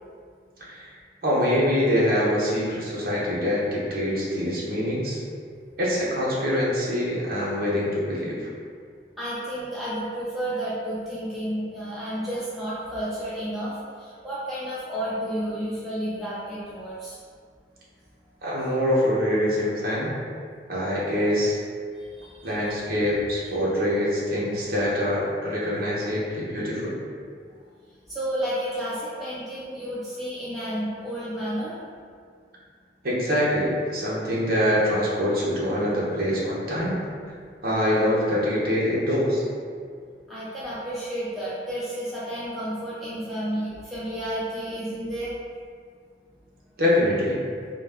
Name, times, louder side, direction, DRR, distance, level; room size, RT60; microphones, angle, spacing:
voice 1, 1.2-5.2 5.8-8.5 18.4-20.1 20.7-21.6 22.4-27.0 33.0-36.9 37.6-39.4 46.8-47.4, left 1 dB, 55° right, -6 dB, 0.7 m, -24 dB
voice 2, 9.2-13.7 14.0-17.1 22.2-22.5 28.1-31.8 40.3-45.3, equal, ahead, -11 dB, 0.4 m, -31 dB
2.3 x 2.1 x 3.3 m, 2.1 s
head